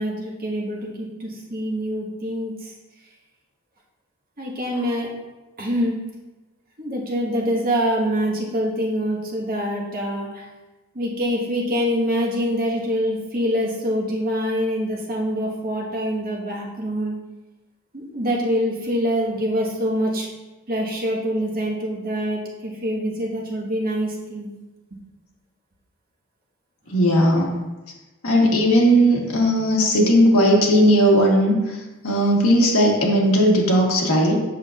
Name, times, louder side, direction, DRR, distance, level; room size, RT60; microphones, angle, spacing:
voice 1, 0.0-2.7 4.4-5.1 5.6-6.0 6.8-10.4 10.9-17.2 17.9-20.3 20.7-24.5, equal, 45° right, -4 dB, 1.5 m, -25 dB
voice 2, 26.9-27.6 28.2-31.8 32.0-34.4, equal, 75° left, -2 dB, 1.4 m, -17 dB
7.6 x 6.2 x 2.5 m, 1.1 s
head